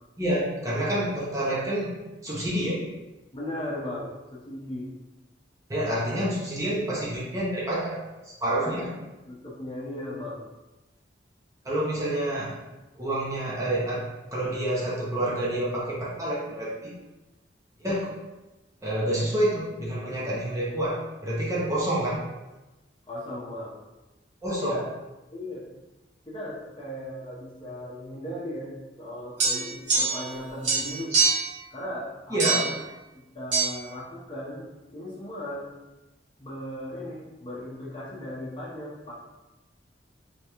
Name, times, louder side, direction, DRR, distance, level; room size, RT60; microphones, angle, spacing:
voice 1, 0.2-1.9 2.2-2.8 5.7-8.9 11.6-12.5 12.9-14.1 14.3-16.9 17.8-18.1 18.8-22.2 24.4-24.8 32.3-32.7, right 1 dB, 20° right, -7 dB, 0.7 m, -28 dB
voice 2, 3.3-4.9 8.6-9.0 9.3-10.4 23.1-23.8 24.5-24.8 25.3-25.6 26.3-31.2 31.7-32.6 33.1-35.7 36.4-39.1, left 1 dB, 30° left, -6 dB, 0.9 m, -37 dB
sound 1, 29.4-30.4 30.6-31.5 32.4-32.8 33.5-33.7, right 4 dB, 75° right, 1.2 m, -24 dB
3.4 x 3.0 x 3.0 m, 1.1 s
head